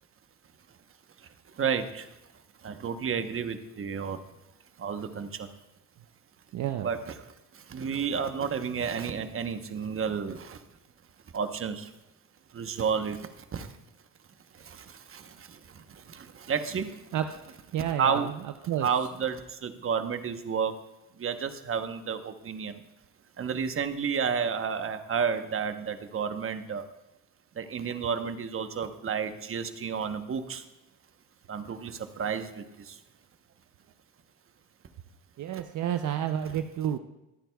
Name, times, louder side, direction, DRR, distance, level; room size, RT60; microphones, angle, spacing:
voice 1, 1.2-2.2 2.6-4.2 4.8-5.5 6.8-10.6 11.3-11.9 12.5-13.7 14.5-17.1 18.0-18.3 18.8-20.8 21.1-22.8 23.4-26.8 27.5-30.6 31.5-33.0 35.5-35.6, right 6 dB, 40° right, 9 dB, 1.0 m, -31 dB
voice 2, 6.5-6.9 17.1-17.3 17.7-18.3 18.7-18.9 35.4-37.0, right 10 dB, 60° right, 8 dB, 0.6 m, -30 dB
23.5 x 9.0 x 2.3 m, 0.98 s
cardioid pair, 90°, 35 cm